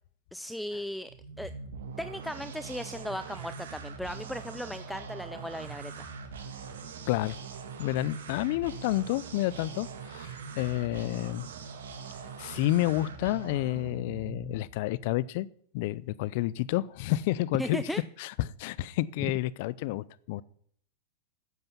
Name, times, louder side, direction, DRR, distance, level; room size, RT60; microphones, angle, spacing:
voice 1, 0.3-1.1 1.4-1.5 2.0-6.1 17.6-18.0 19.2-19.3, equal, ahead, 0.4 m, -36 dB
sound 1, 1.1-14.8, right 5 dB, 80° right, 1.7 m, -42 dB
voice 2, 7.1-7.4 7.8-11.5 12.4-15.5 15.7-17.8 18.2-20.4, left 16 dB, 60° left, 0.5 m, -30 dB
9.3 x 7.8 x 6.0 m
hypercardioid pair, 105°, 0 cm